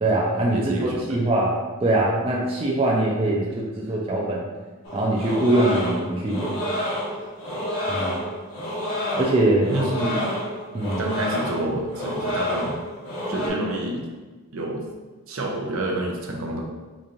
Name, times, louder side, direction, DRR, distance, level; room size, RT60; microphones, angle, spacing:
voice 1, 0.0-1.5 1.8-4.4 4.9-6.6 7.9-8.2 9.2-9.7 10.7-11.0, right 1 dB, 25° right, -3 dB, 0.4 m, -22 dB
voice 2, 0.5-1.2 9.7-10.3 11.0-12.8 13.3-14.0 14.5-14.8 15.3-16.6, right 1 dB, 70° right, 0 dB, 0.6 m, -28 dB
sound 1, 4.8-13.5, equal, 75° left, 1.1 m, -29 dB
5.1 x 2.5 x 2.8 m, 1.3 s
head